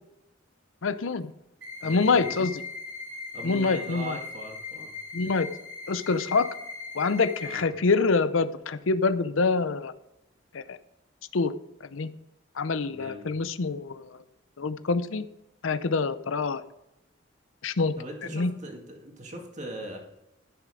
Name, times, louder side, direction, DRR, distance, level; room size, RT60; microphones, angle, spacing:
voice 1, 0.8-1.3 1.8-2.6 3.4-4.2 5.1-5.5 5.9-6.5 6.9-9.9 10.5-10.8 11.3-11.5 11.9-12.1 12.6-14.1 14.6-15.3 15.6-16.6 17.6-17.9 18.3-18.5, left 4 dB, 80° left, 13 dB, 0.6 m, -26 dB
sound 1, 1.6-7.6, left 4 dB, 60° right, 2.8 m, -39 dB
voice 2, 1.8-2.3 3.3-4.9 7.4-7.7 12.9-13.3 18.0-20.0, right 1 dB, 35° right, 1 dB, 2.1 m, -40 dB
14.0 x 6.7 x 4.9 m, 0.90 s
head